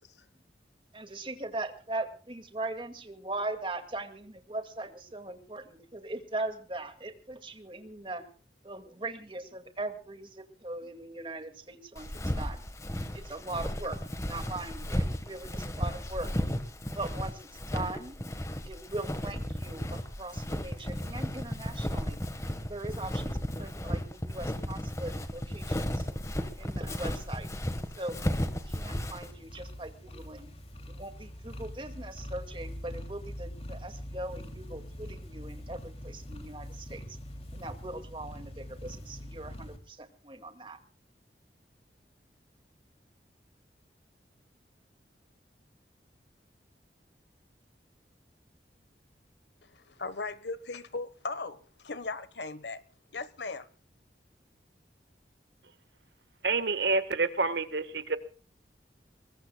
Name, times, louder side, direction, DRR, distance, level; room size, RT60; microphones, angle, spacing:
voice 1, 0.9-8.2 8.6-12.1 12.4-12.6 13.1-16.3 16.9-18.2 18.6-22.2 22.6-26.1 26.6-27.5 28.0-28.2 28.5-30.5 30.9-37.2 37.5-40.8, right 2 dB, 30° right, 2.2 m, -40 dB
Walk footsteps, 12.0-29.3, equal, 15° left, 1.5 m, -34 dB
sound 1, 28.8-39.8, equal, 35° left, 2.8 m, -43 dB
voice 2, 49.6-52.8 53.1-53.7, left 3 dB, 80° left, 1.3 m, -38 dB
voice 3, 56.4-58.2, right 3 dB, 80° right, 1.5 m, -28 dB
23.0 x 21.0 x 2.3 m
head